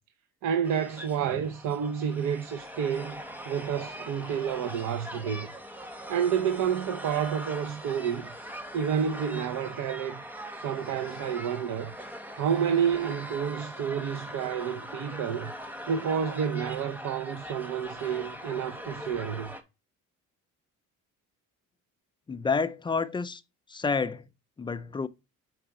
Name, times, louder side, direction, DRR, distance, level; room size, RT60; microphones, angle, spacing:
voice 1, 0.4-5.5 6.1-8.3 8.7-10.2 10.6-11.9 12.3-15.5 15.9-19.5, right 8 dB, 75° right, 0.8 m, -29 dB
sound 1, 0.6-19.6, equal, 5° right, 0.9 m, -41 dB
voice 2, 22.3-23.4 23.7-24.3 24.6-25.1, left 5 dB, 15° left, 0.3 m, -29 dB
5.0 x 4.6 x 4.7 m
cardioid pair, 145°, 31 cm